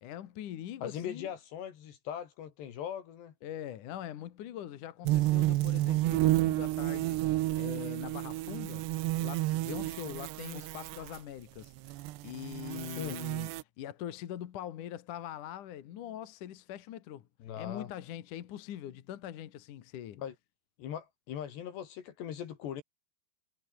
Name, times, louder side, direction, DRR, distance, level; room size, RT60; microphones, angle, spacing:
voice 1, 0.0-1.3 3.4-7.2 7.5-8.9 9.2-13.5 13.8-17.3 17.6-20.2, left 11 dB, 60° left, 2.5 m, -42 dB
voice 2, 0.8-3.3 13.0-13.2 17.4-17.9 20.2-20.3 20.8-22.8, left 9 dB, 80° left, 4.6 m, -40 dB
sound 1, 5.1-11.2 11.8-13.6, right 17 dB, 85° right, 3.1 m, -31 dB
omnidirectional pair, 4.9 m